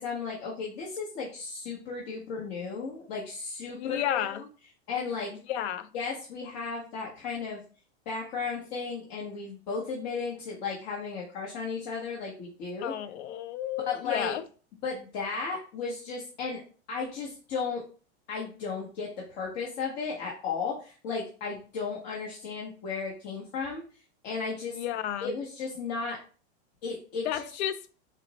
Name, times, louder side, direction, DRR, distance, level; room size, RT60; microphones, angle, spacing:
voice 1, 0.0-4.2 4.9-5.3 5.9-7.6 8.1-12.9 13.8-14.3 14.8-16.6 16.9-17.8 18.3-23.8 24.2-24.8 25.2-26.2 26.8-27.5, left 5 dB, 50° left, 1.1 m, -34 dB
voice 2, 3.7-4.4 5.5-5.9 12.8-14.4 24.7-25.3 27.2-27.8, left 11 dB, 80° left, 0.5 m, -32 dB
4.1 x 2.0 x 4.0 m
supercardioid pair, 140°, 33 cm